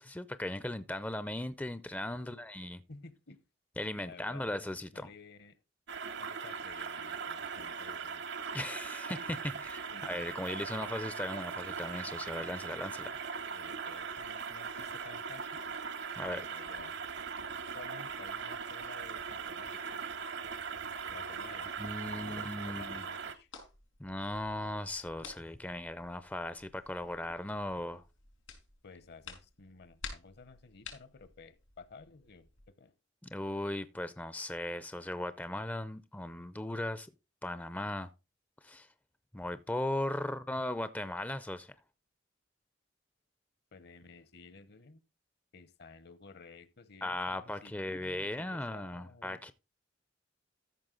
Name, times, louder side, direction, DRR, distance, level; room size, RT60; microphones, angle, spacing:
voice 1, 0.0-2.8 3.8-5.1 8.5-13.1 16.2-16.4 21.8-23.0 24.0-28.0 33.2-37.1 37.4-38.1 38.6-38.9 39.3-41.7 47.0-49.5, left 1 dB, 10° left, 0.4 m, -37 dB
voice 2, 2.9-3.4 4.0-4.6 4.9-5.6 6.2-8.2 9.5-10.1 13.5-15.6 16.3-17.0 17.7-20.0 21.1-21.7 22.1-23.5 28.8-32.9 43.7-45.0 45.5-49.4, left 4 dB, 60° left, 0.9 m, -53 dB
sound 1, 5.9-23.3, right 6 dB, 65° right, 0.9 m, -40 dB
sound 2, 23.3-32.6, left 5 dB, 90° left, 4.3 m, -53 dB
13.5 x 6.2 x 3.8 m
head